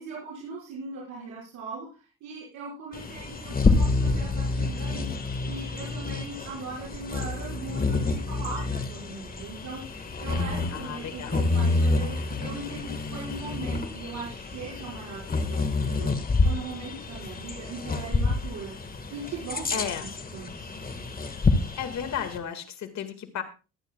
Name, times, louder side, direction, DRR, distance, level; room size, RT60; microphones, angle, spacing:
voice 1, 0.0-16.1 16.4-18.8 19.1-19.8 20.3-20.8, right 4 dB, 80° right, -6 dB, 5.5 m, -39 dB
Bird vocalization bird call bird song, 2.9-22.4, left 3 dB, 30° left, 1.7 m, -28 dB
voice 2, 10.7-11.3 19.7-20.0 21.8-23.4, left 8 dB, 65° left, 7 dB, 1.9 m, -33 dB
23.0 x 9.6 x 2.3 m, 0.32 s
cardioid pair, 90°, 30 cm